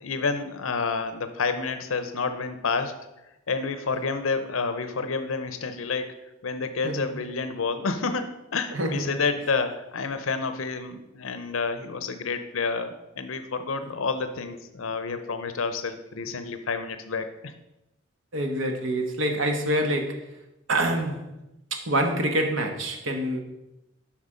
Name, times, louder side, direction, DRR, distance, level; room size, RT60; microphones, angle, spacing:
voice 1, 0.0-2.9 3.5-6.1 6.4-17.2, left 4 dB, 80° left, 9 dB, 0.7 m, -29 dB
voice 2, 8.7-9.1 18.3-20.2 20.7-21.2 21.7-23.4, right 1 dB, 70° right, 4 dB, 1.3 m, -26 dB
8.2 x 5.9 x 5.0 m, 0.94 s
head